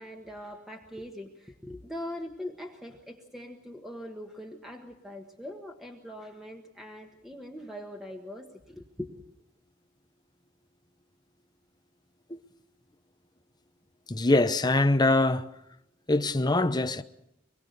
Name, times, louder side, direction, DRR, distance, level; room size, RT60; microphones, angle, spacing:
voice 1, 0.0-9.2, left 1 dB, ahead, 1.5 m, -42 dB
voice 2, 14.1-15.5 16.1-17.0, left 2 dB, 20° left, 0.9 m, -23 dB
25.0 x 21.5 x 6.7 m
head